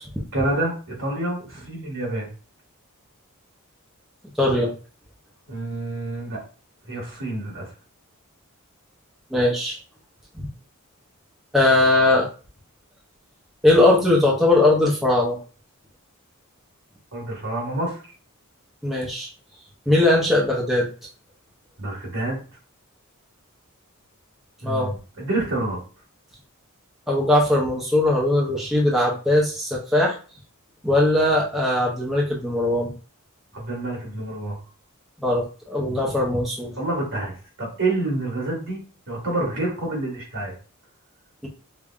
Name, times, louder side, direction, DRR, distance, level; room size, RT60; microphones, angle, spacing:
voice 1, 0.3-0.7 1.0-2.3 5.5-6.4 6.9-7.7 17.1-18.0 21.8-22.4 24.6-25.8 33.5-34.6 36.8-37.3 37.6-38.8 39.1-40.5, right 2 dB, 65° right, -2 dB, 1.7 m, -27 dB
voice 2, 4.4-4.7 9.3-9.8 10.4-10.5 11.5-12.3 13.6-15.4 18.8-19.3 19.9-20.9 24.6-24.9 27.1-30.2 30.8-32.9 35.2-36.7, left 1 dB, ahead, -5 dB, 0.6 m, -20 dB
5.1 x 2.2 x 2.4 m, 0.37 s
head